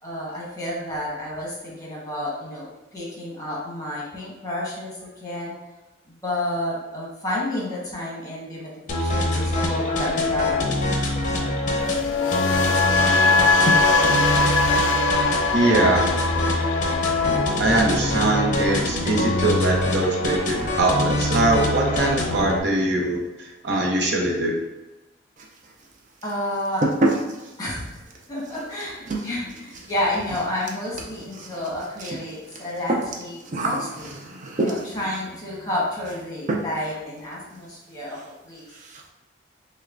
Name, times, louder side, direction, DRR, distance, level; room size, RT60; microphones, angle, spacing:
voice 1, 0.0-5.6 6.1-10.7 13.7-14.1 26.2-26.8 27.6-34.1 34.5-38.2 38.4-38.7, left 1 dB, 20° left, -5 dB, 1.2 m, -30 dB
sound 1, 8.9-22.6, left 2 dB, 40° left, 0.6 m, -24 dB
sound 2, 11.8-19.9 20.2-20.5, left 3 dB, 85° left, 0.4 m, -22 dB
voice 2, 15.5-16.1 17.6-24.5, right 2 dB, 60° right, 0 dB, 0.8 m, -22 dB
sound 3, 25.4-25.9 26.2-35.1 36.0-36.2 36.5-37.0 37.2-37.3 37.7-37.8 38.1-38.3 38.6-39.1, right 2 dB, 40° right, 0.5 m, -29 dB
6.1 x 2.2 x 2.5 m, 1.1 s
head